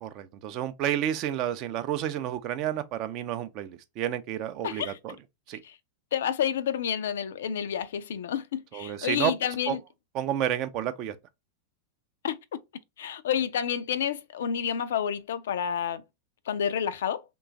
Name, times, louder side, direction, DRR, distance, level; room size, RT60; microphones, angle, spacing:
voice 1, 0.0-5.2 5.5-5.6 8.7-9.3 9.7-9.8 10.1-11.2, right 11 dB, 40° right, 0.4 m, -30 dB
voice 2, 4.6-5.0 5.6-5.7 6.1-9.8 12.2-12.4 13.0-16.0 16.5-17.2, left 8 dB, 60° left, 0.3 m, -29 dB
3.0 x 2.3 x 3.6 m
figure-of-eight pair, 90°, 0 cm